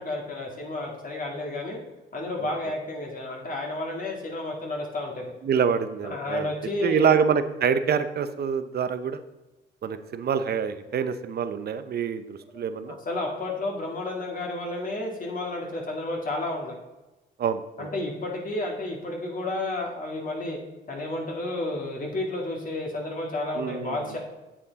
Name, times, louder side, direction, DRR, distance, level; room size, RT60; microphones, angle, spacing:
voice 1, 0.0-1.8 2.1-5.3 6.0-7.2 12.5-16.8 17.8-20.6 20.9-24.2, left 2 dB, 45° left, -1 dB, 2.0 m, -31 dB
voice 2, 5.4-6.5 6.8-9.2 9.8-13.0 17.4-17.9 23.6-24.2, right 7 dB, 55° right, 11 dB, 0.7 m, -26 dB
8.8 x 7.1 x 4.1 m, 1.1 s
cardioid pair, 90°, 20 cm